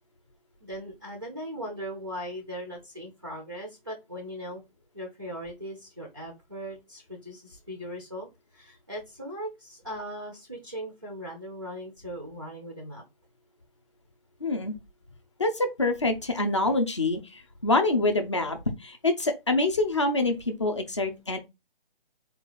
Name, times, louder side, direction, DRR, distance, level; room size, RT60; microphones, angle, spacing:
voice 1, 0.6-4.6 4.9-8.3 8.5-13.0, equal, 25° right, 0.4 m, -39 dB
voice 2, 14.4-14.7 15.4-21.4, left 2 dB, 30° left, 0.5 m, -26 dB
3.9 x 2.3 x 3.8 m
hypercardioid pair, 170°, 30 cm